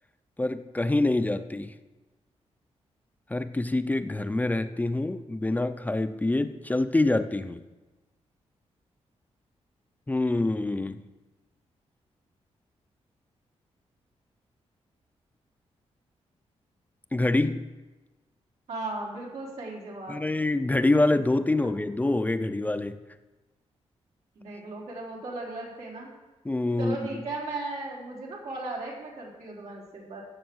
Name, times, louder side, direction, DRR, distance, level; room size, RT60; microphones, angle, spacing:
voice 1, 0.4-1.7 3.3-7.6 10.1-11.0 17.1-17.6 20.1-23.0 26.4-27.0, left 2 dB, 15° left, 9 dB, 0.6 m, -26 dB
voice 2, 18.7-20.3 24.3-26.1 26.8-30.2, right 2 dB, 85° right, -3 dB, 4.3 m, -36 dB
16.5 x 7.0 x 6.3 m, 1.1 s
cardioid pair, 110°, 11 cm